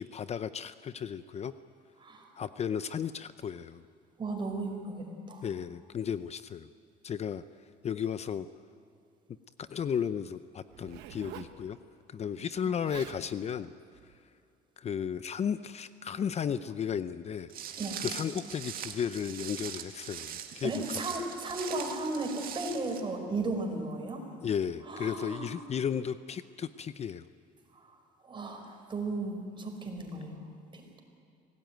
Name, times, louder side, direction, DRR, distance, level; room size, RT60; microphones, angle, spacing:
voice 1, 0.0-1.5 2.4-3.8 5.4-6.7 7.0-7.4 7.8-8.5 9.6-11.8 12.1-13.7 14.8-21.0 24.4-27.2, left 8 dB, 40° left, 13 dB, 0.6 m, -34 dB
voice 2, 2.0-2.3 4.2-5.5 12.6-12.8 17.8-18.0 20.6-24.2 24.9-25.6 27.7-28.0 28.2-30.4 30.7-31.0, right 2 dB, 30° right, 3 dB, 5.1 m, -35 dB
Zipper (clothing), 10.7-11.6 12.6-12.7 12.8-13.2 13.9-14.2, right 11 dB, 90° right, 1.5 m, -46 dB
Walk footsteps, 17.5-23.0, right 9 dB, 60° right, 2.0 m, -41 dB
26.0 x 18.0 x 9.3 m, 2.6 s
cardioid pair, 110°, 17 cm